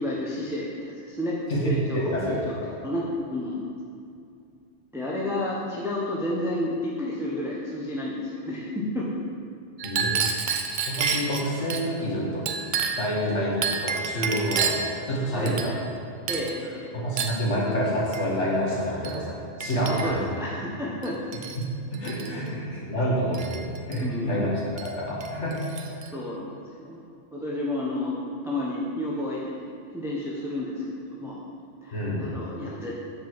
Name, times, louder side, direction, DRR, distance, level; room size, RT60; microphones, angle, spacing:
voice 1, 0.0-1.4 1.7-2.5 2.8-3.0 3.3-3.6 4.9-9.1 15.3-15.7 16.3-16.9 19.8-21.2 24.0-24.5 26.1-27.0 27.3-28.1 28.4-31.4 31.8-32.9, left 1 dB, 5° right, -6 dB, 0.7 m, -31 dB
voice 2, 1.5-2.4 9.8-10.1 10.9-12.5 13.0-15.8 16.3-16.4 16.9-20.2 21.6-21.7 21.9-25.6 31.9-32.3, equal, 70° left, -5 dB, 1.6 m, -28 dB
Chink clink, 9.8-11.8 12.5-13.1 13.6-14.9 15.5-16.0 16.3-16.6 17.2-17.4 18.1-18.3 19.0-19.2 19.6-20.3 21.0-21.6 21.9-22.3 23.3-24.0 24.8-24.9 25.2-26.1, right 5 dB, 55° right, 0.6 m, -29 dB
7.6 x 5.1 x 4.5 m, 2.4 s
omnidirectional pair, 1.2 m